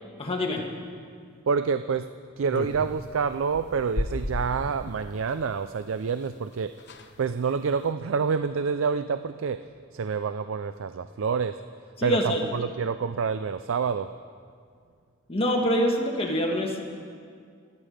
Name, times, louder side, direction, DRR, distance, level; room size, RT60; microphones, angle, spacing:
voice 1, 0.2-0.6 12.0-12.4 15.3-16.8, equal, 30° left, 0 dB, 1.8 m, -25 dB
voice 2, 1.5-2.1 2.4-6.7 7.2-9.6 9.9-11.6 12.0-14.1, right 5 dB, 90° right, 11 dB, 0.4 m, -27 dB
sound 1, 2.5-5.0 6.3-6.4 6.5-6.6 6.8-7.2 7.6-7.9, left 1 dB, 60° left, 1.0 m, -34 dB
28.5 x 9.5 x 5.1 m, 2.2 s
head